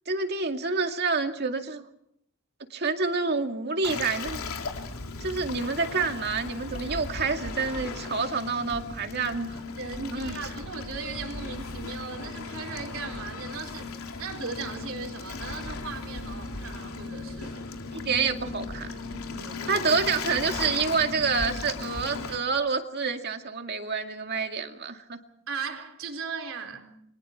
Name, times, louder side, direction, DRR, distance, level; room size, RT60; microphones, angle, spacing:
voice 1, 0.1-1.8 2.7-4.4 5.2-9.6 10.1-10.3 17.9-18.9 19.7-25.2, right 4 dB, 50° right, 2.3 m, -28 dB
Waves surf, 3.8-22.4, left 3 dB, 85° left, 3.0 m, -37 dB
voice 2, 9.8-13.9 14.2-17.6 19.3-19.9 25.5-27.0, right 4 dB, 65° right, 3.9 m, -37 dB
29.5 x 24.0 x 4.5 m
head